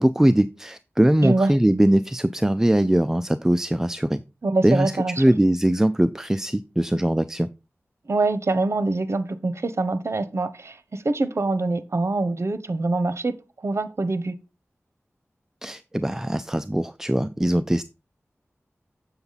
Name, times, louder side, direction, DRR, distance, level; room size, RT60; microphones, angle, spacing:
voice 1, 0.0-4.2 4.6-4.9 5.2-7.5 15.6-17.8, right 1 dB, 10° right, 0.4 m, -21 dB
voice 2, 1.2-1.5 4.4-5.2 8.0-13.3 13.6-14.4, right 2 dB, 65° right, 1.0 m, -24 dB
7.9 x 7.1 x 4.0 m
wide cardioid pair, 60°, 5 cm